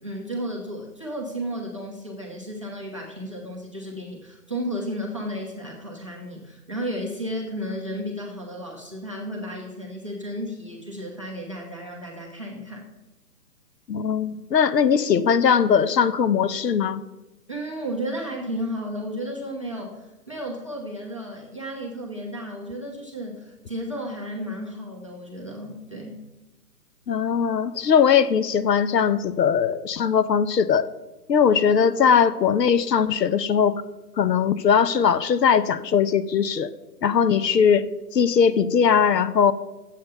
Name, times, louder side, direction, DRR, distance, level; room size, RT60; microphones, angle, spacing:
voice 1, 0.0-12.9 17.5-26.2, equal, 20° right, -1 dB, 0.8 m, -33 dB
voice 2, 13.9-17.0 27.1-30.8 31.3-33.8 34.2-36.7 37.0-37.9 38.1-39.5, left 7 dB, 85° left, 14 dB, 0.8 m, -20 dB
9.0 x 7.6 x 5.4 m, 1.1 s
hypercardioid pair, 175°, 48 cm